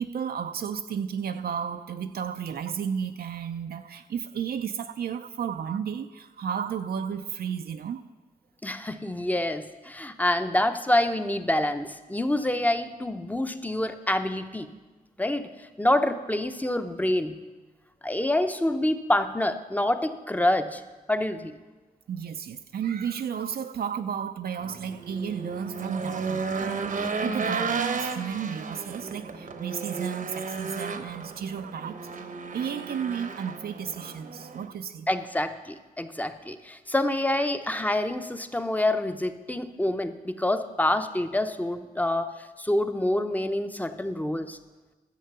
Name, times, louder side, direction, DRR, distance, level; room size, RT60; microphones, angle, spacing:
voice 1, 0.0-8.0 22.1-32.0 32.5-35.1, right 7 dB, 80° right, 7 dB, 0.5 m, -33 dB
voice 2, 8.6-14.7 15.2-17.4 18.0-20.8 21.1-21.6 35.1-44.6, left 1 dB, 10° left, 9 dB, 0.6 m, -27 dB
Race car auto racing / Engine, 24.6-34.7, right 4 dB, 60° right, 0.9 m, -34 dB
11.5 x 7.4 x 6.8 m, 1.2 s
wide cardioid pair, 100°, 16 cm